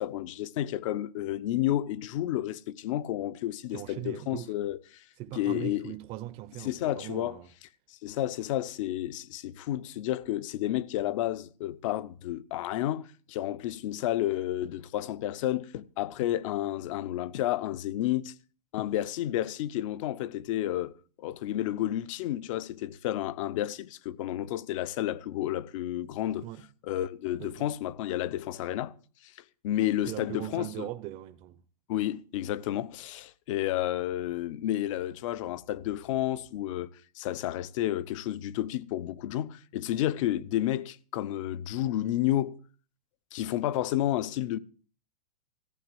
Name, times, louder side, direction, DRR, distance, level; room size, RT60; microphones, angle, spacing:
voice 1, 0.0-4.8 5.3-5.9 6.6-7.4 8.0-18.3 18.7-20.9 21.2-26.5 26.9-28.9 29.2-29.3 29.6-30.7 31.9-36.9 37.2-42.6 43.3-44.6, left 13 dB, 50° left, 0.8 m, -31 dB
voice 2, 3.7-4.6 5.2-7.5 26.4-26.7 27.4-27.7 30.1-31.6, right 14 dB, 30° right, 0.6 m, -40 dB
14.5 x 8.0 x 7.8 m
hypercardioid pair, 140°, 20 cm